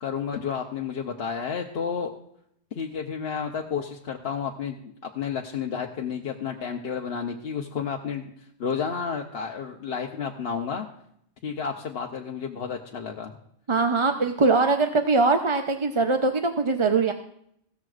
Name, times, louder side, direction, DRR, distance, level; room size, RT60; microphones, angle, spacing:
voice 1, 0.0-2.1 2.8-8.3 8.6-10.9 11.4-13.4, left 6 dB, 70° left, 1 dB, 1.0 m, -31 dB
voice 2, 13.7-17.1, right 3 dB, 35° right, 5 dB, 0.6 m, -22 dB
16.0 x 13.5 x 2.4 m, 0.72 s
omnidirectional pair, 1.1 m